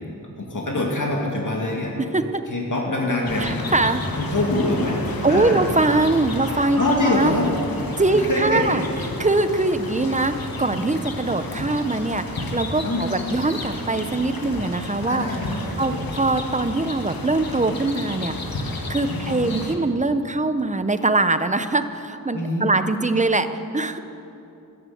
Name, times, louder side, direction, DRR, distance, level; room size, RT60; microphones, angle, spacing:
voice 1, 0.4-2.0 2.5-3.5 4.2-5.6 6.8-7.5 8.1-8.8 12.8-13.1 15.1-16.1 19.0-19.6 22.3-22.7, left 2 dB, 60° left, -2 dB, 2.4 m, -24 dB
sound 1, 3.2-19.7, left 2 dB, 80° left, 1.5 m, -31 dB
voice 2, 3.4-4.0 5.2-7.3 8.0-8.8 9.2-15.3 15.8-18.3 18.9-24.0, right 2 dB, 20° right, 10 dB, 0.7 m, -22 dB
13.0 x 11.0 x 7.8 m, 2.8 s
wide cardioid pair, 75°, 35 cm